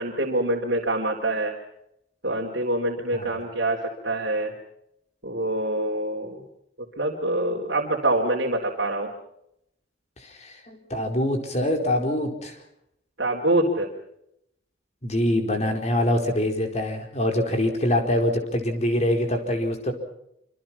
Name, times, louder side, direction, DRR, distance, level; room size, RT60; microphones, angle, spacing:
voice 1, 0.0-1.6 2.2-4.5 5.2-6.4 7.0-9.1 13.2-13.9, right 1 dB, 60° right, -1 dB, 3.9 m, -25 dB
voice 2, 10.2-12.6 15.0-19.9, left 1 dB, 35° left, 5 dB, 4.5 m, -24 dB
26.5 x 26.0 x 5.9 m, 0.78 s
head